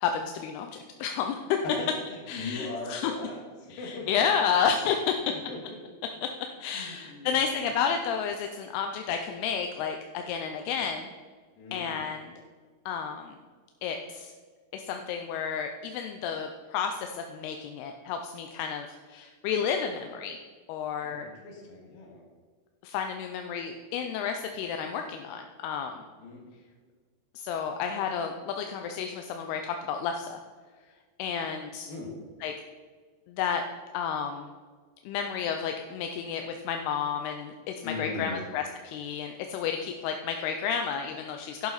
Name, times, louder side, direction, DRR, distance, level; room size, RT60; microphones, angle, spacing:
voice 1, 0.0-1.4 2.3-3.1 3.8-5.0 6.6-11.1 11.7-12.3 12.9-13.3 13.8-14.3 14.7-20.4 20.7-21.3 22.8-25.9 27.4-30.4 31.2-31.9 32.4-32.5 33.3-33.6 33.9-34.5 35.1-41.7, left 7 dB, 85° left, 5 dB, 2.7 m, -31 dB
voice 2, 1.6-4.4 5.1-5.8 6.1-6.2 6.7-7.6 11.5-12.1 21.0-22.3 26.2-26.5 31.9-32.1 37.8-38.4, left 2 dB, 70° left, 0 dB, 3.5 m, -40 dB
11.5 x 8.6 x 4.1 m, 1.5 s
omnidirectional pair, 4.5 m